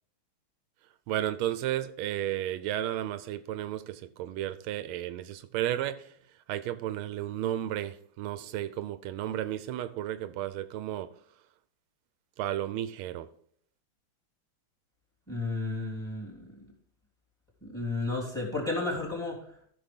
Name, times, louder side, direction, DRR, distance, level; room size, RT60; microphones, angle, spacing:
voice 1, 1.1-6.1 6.5-11.1 12.4-13.3, right 12 dB, 85° right, 1.4 m, -33 dB
voice 2, 15.3-16.5 17.6-19.4, left 3 dB, ahead, 3.1 m, -32 dB
14.0 x 6.0 x 3.6 m
omnidirectional pair, 2.3 m